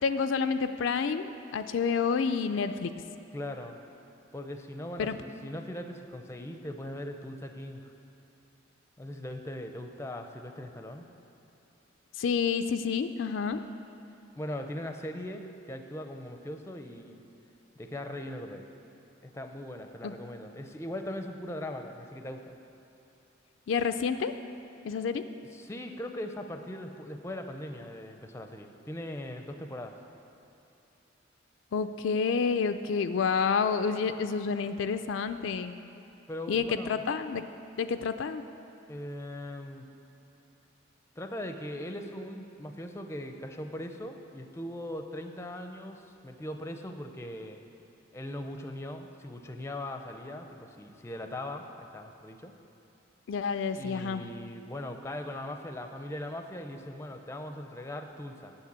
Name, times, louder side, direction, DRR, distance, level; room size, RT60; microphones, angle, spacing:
voice 1, 0.0-2.9 5.0-5.2 12.2-13.6 20.0-20.1 23.7-24.3 24.8-25.2 31.7-35.8 36.5-37.4 37.8-38.4 53.3-54.2, left 5 dB, 70° left, 9 dB, 0.4 m, -29 dB
voice 2, 3.3-3.8 4.3-7.9 9.0-11.1 14.4-17.2 17.8-18.6 19.2-22.6 25.5-30.0 36.3-37.0 38.9-39.9 41.2-47.6 48.1-52.5 53.7-58.6, left 1 dB, 15° left, 6 dB, 0.5 m, -40 dB
8.5 x 6.7 x 8.1 m, 2.8 s
head